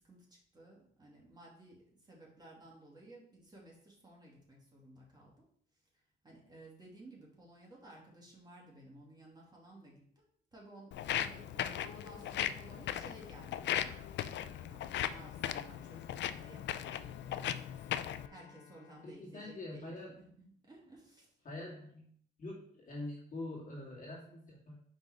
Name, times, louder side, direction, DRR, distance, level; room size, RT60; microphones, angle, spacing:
voice 1, 0.0-5.5 6.2-10.2 10.5-21.3, right 1 dB, 20° right, -4 dB, 2.3 m, -56 dB
Walk footsteps, 10.9-18.3, left 10 dB, 65° left, 0.4 m, -38 dB
Bowed string instrument, 14.3-20.3, left 7 dB, 80° left, 0.9 m, -60 dB
voice 2, 19.0-20.1 21.4-22.1 22.4-24.8, left 2 dB, 40° left, -4 dB, 2.4 m, -45 dB
5.3 x 4.0 x 4.8 m, 0.64 s
cardioid pair, 90°, 20 cm